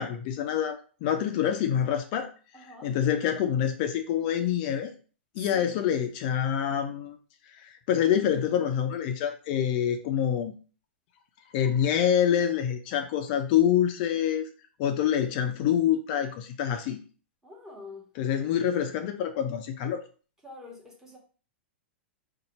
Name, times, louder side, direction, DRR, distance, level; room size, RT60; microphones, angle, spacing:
voice 1, 0.0-2.3 2.5-4.9 5.4-7.2 7.5-10.5 11.5-14.5 14.8-17.0 18.2-20.0, left 9 dB, 50° left, 0.4 m, -26 dB
voice 2, 2.5-2.9 5.4-5.7 17.4-18.1 20.4-21.2, left 2 dB, 10° right, 1.1 m, -46 dB
2.7 x 2.2 x 4.0 m
hypercardioid pair, 105°, 6 cm